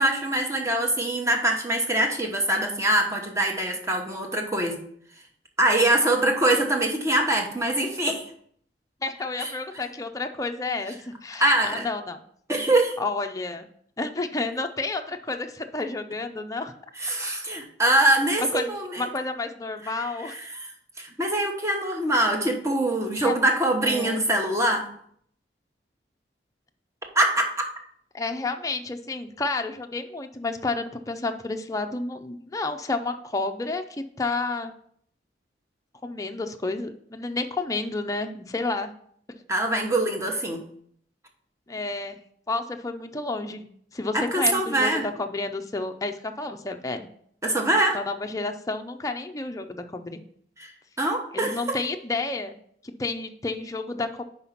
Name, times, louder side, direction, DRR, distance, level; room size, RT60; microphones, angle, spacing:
voice 1, 0.0-4.8 5.6-8.3 9.4-9.5 11.4-11.9 12.5-13.0 17.0-19.0 20.2-20.7 21.0-24.9 27.1-27.5 39.5-40.6 44.1-45.0 47.4-48.0 50.6-50.7 51.0-51.8, right 1 dB, 15° right, 3 dB, 1.1 m, -23 dB
voice 2, 9.0-11.0 11.2-12.2 13.0-13.7 14.0-16.7 18.4-18.7 19.0-20.4 23.2-23.4 23.8-24.2 28.1-34.7 36.0-38.9 41.7-42.2 42.5-43.7 43.9-47.1 47.9-50.2 51.3-52.6 52.8-54.2, left 3 dB, 20° left, 5 dB, 0.5 m, -30 dB
5.5 x 5.0 x 5.7 m, 0.63 s
head